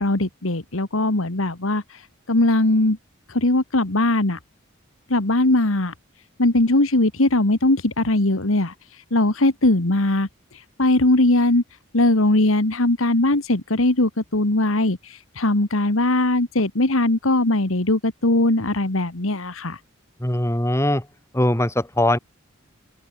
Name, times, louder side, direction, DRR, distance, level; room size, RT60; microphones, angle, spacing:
voice 1, 0.0-3.0 3.3-4.4 5.1-5.9 6.4-11.6 11.9-19.8, left 2 dB, 80° left, 2.0 m, -20 dB
voice 2, 20.2-21.0 21.3-22.2, left 1 dB, 15° left, 3.4 m, -21 dB
open air
head